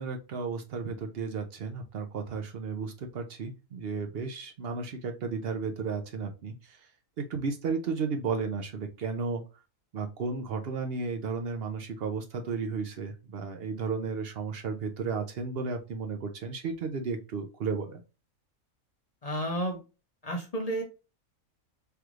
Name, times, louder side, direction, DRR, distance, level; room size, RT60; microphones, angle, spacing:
voice 1, 0.0-6.8 7.2-9.4 9.9-18.0, right 4 dB, 60° right, 6 dB, 0.7 m, -33 dB
voice 2, 19.2-19.8 20.2-20.8, right 1 dB, 40° left, 2 dB, 0.5 m, -31 dB
3.4 x 3.1 x 2.4 m, 0.30 s
omnidirectional pair, 1.5 m